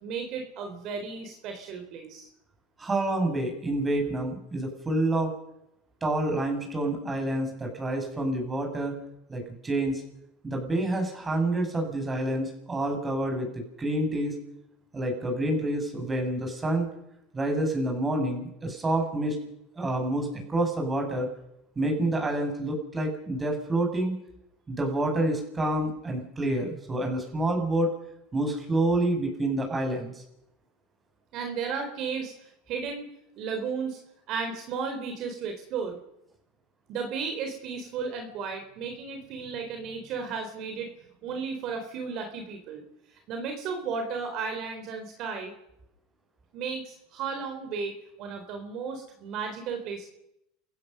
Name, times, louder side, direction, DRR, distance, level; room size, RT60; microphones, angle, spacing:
voice 1, 0.0-2.3 31.3-33.1 33.4-34.0 34.3-36.0 36.9-40.9 41.2-42.8 43.1-45.5 46.5-47.9 48.2-50.1, right 5 dB, 50° right, 5 dB, 3.9 m, -34 dB
voice 2, 2.8-5.3 6.0-8.9 9.3-10.0 10.4-14.3 14.9-16.9 17.3-19.4 19.7-21.3 21.7-24.1 24.7-27.9 28.3-30.2, right 1 dB, 20° right, 3 dB, 6.7 m, -28 dB
29.0 x 16.0 x 6.8 m, 0.82 s
supercardioid pair, 115°, 0 cm